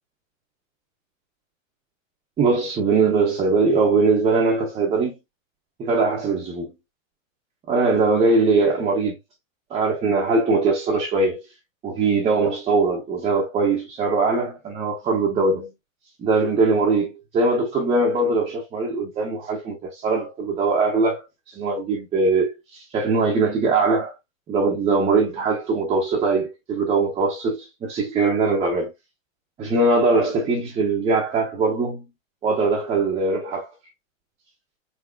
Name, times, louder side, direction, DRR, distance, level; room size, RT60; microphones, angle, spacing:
voice 1, 2.4-5.1 5.8-6.7 7.7-9.2 9.7-11.4 11.8-15.7 16.2-24.1 24.5-28.9 29.6-32.0 32.4-33.7, right 3 dB, 15° right, 0.7 m, -21 dB
4.1 x 3.7 x 2.2 m
hypercardioid pair, 140°, 40 cm